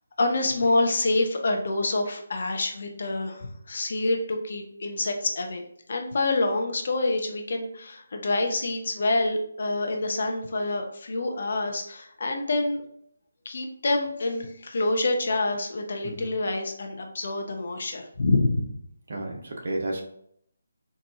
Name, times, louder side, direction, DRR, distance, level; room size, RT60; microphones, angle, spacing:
voice 1, 0.2-5.6 5.9-12.8 13.5-18.7, left 2 dB, 50° left, 3 dB, 0.7 m, -27 dB
voice 2, 19.1-20.0, right 2 dB, 55° right, 1 dB, 0.9 m, -32 dB
4.1 x 2.6 x 3.5 m, 0.69 s
figure-of-eight pair, 150°, 0 cm